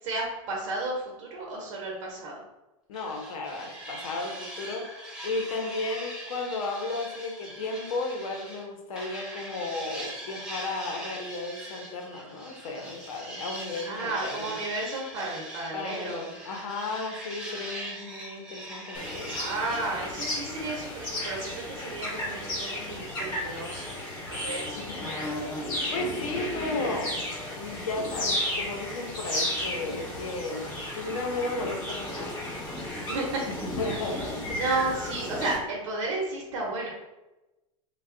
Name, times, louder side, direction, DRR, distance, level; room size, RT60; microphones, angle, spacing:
voice 1, 0.0-2.4 13.9-16.3 19.3-24.0 24.3-24.8 33.1-33.4 34.6-36.9, right 2 dB, 60° right, -2 dB, 0.8 m, -33 dB
voice 2, 2.9-4.9 5.2-14.6 15.7-19.3 24.7-27.3 27.5-30.7 30.9-32.4 33.5-34.6, left 3 dB, 75° left, 2 dB, 0.8 m, -34 dB
sound 1, 2.9-8.6 9.0-19.8, right 1 dB, 5° right, 0.5 m, -41 dB
sound 2, 18.9-35.6, left 1 dB, 25° left, 0.9 m, -34 dB
3.2 x 2.3 x 3.7 m, 1.0 s
supercardioid pair, 160°, 18 cm